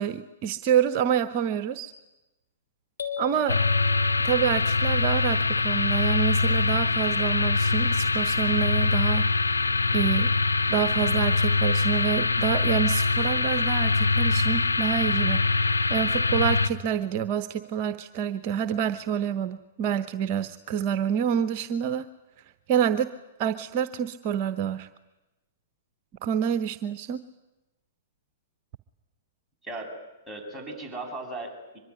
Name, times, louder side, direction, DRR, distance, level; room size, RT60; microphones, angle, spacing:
voice 1, 0.0-1.9 3.2-3.6 4.2-9.3 9.9-10.3 10.7-22.0 22.7-23.1 23.4-24.9 26.2-27.2, right 9 dB, 45° right, 11 dB, 0.9 m, -27 dB
sound 1, 3.0-4.9, left 7 dB, 75° left, 3.1 m, -37 dB
sound 2, 3.5-16.7, left 3 dB, 90° left, 1.3 m, -23 dB
voice 2, 30.3-31.8, right 2 dB, ahead, -3 dB, 7.9 m, -37 dB
24.0 x 22.5 x 10.0 m, 1.0 s
figure-of-eight pair, 110°, 0 cm